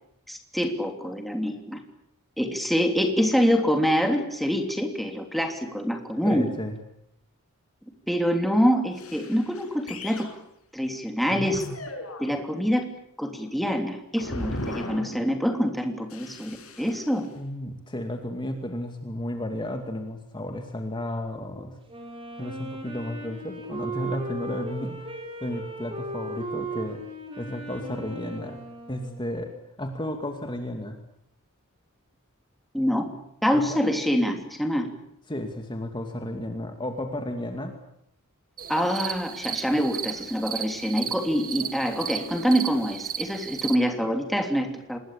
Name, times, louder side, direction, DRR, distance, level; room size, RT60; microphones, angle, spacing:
voice 1, 0.3-1.8 2.4-6.5 8.1-10.3 10.7-11.6 12.2-12.8 13.2-17.3 32.7-33.1 33.4-34.9 38.7-45.0, equal, ahead, 4 dB, 3.2 m, -25 dB
voice 2, 6.2-6.8 17.4-21.8 22.4-25.0 25.4-27.0 27.4-28.6 28.9-29.5 29.8-31.0 33.5-33.8 35.3-37.7, left 1 dB, 20° left, 4 dB, 2.3 m, -33 dB
sound 1, 8.9-10.4 11.3-12.2 14.2-15.4 16.1-17.2, left 1 dB, 75° left, 6.5 m, -37 dB
Wind instrument woodwind instrument, 21.9-29.6, right 2 dB, 25° right, 5.9 m, -37 dB
sound 2, 38.6-43.7, right 8 dB, 45° right, 1.7 m, -35 dB
26.5 x 21.0 x 8.7 m, 0.75 s
head